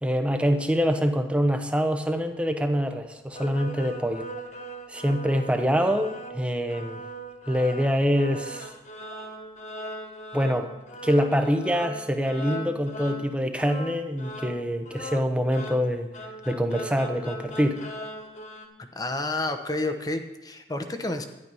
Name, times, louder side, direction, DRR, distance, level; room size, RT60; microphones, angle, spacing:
voice 1, 0.0-4.3 4.9-7.0 7.5-8.7 10.3-10.7 11.0-16.1 16.5-17.8, equal, 5° right, 6 dB, 0.9 m, -25 dB
sound 1, 3.3-18.7, right 1 dB, 40° left, 1.5 m, -39 dB
voice 2, 18.9-21.2, left 2 dB, 20° left, 6 dB, 0.9 m, -30 dB
12.0 x 10.5 x 5.5 m, 1.0 s
head